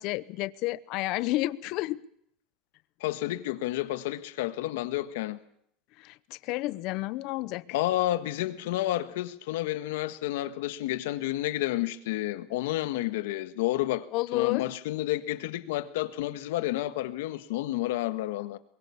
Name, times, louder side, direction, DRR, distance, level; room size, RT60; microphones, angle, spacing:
voice 1, 0.0-2.0 6.0-7.8 14.1-14.7, left 18 dB, 55° left, 0.8 m, -31 dB
voice 2, 3.0-5.4 7.7-14.1 14.3-18.6, left 15 dB, 85° left, 1.6 m, -30 dB
23.0 x 22.0 x 7.2 m
supercardioid pair, 150°, 0 cm